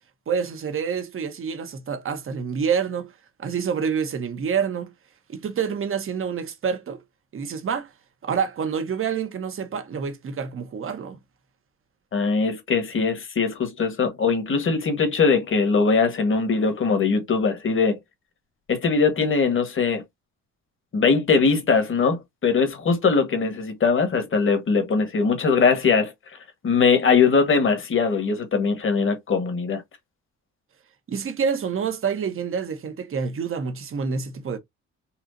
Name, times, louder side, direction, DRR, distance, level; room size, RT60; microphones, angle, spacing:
voice 1, 0.3-3.1 3.4-4.9 5.3-7.0 7.3-7.9 8.2-11.2 31.1-34.6, right 6 dB, 45° right, 1.0 m, -27 dB
voice 2, 12.1-18.0 18.7-20.0 20.9-26.1 26.6-29.8, left 5 dB, 40° left, 1.4 m, -21 dB
4.4 x 2.4 x 2.5 m
cardioid pair, 90°, 30 cm